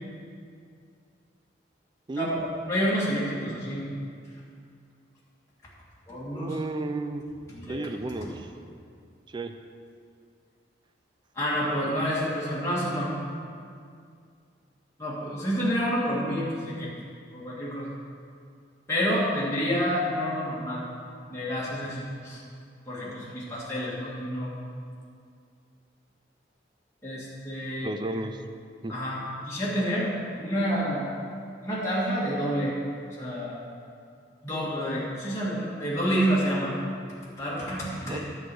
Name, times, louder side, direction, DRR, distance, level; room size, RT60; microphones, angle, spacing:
voice 1, 2.1-3.8 6.1-6.5 7.5-7.8 8.2-8.3 11.4-13.1 15.0-16.9 17.3-17.9 18.9-20.8 21.3-22.4 22.9-24.6 27.0-27.9 28.9-30.1 30.4-31.1 31.6-32.8 33.2-33.6 34.4-36.8 37.4-38.2, equal, 15° left, -8 dB, 1.8 m, -28 dB
voice 2, 6.3-7.2 7.7-8.5 9.3-9.5 27.8-28.4 28.8-28.9 38.1-38.2, right 2 dB, 25° right, 7 dB, 0.4 m, -32 dB
11.0 x 4.8 x 7.6 m, 2.3 s
head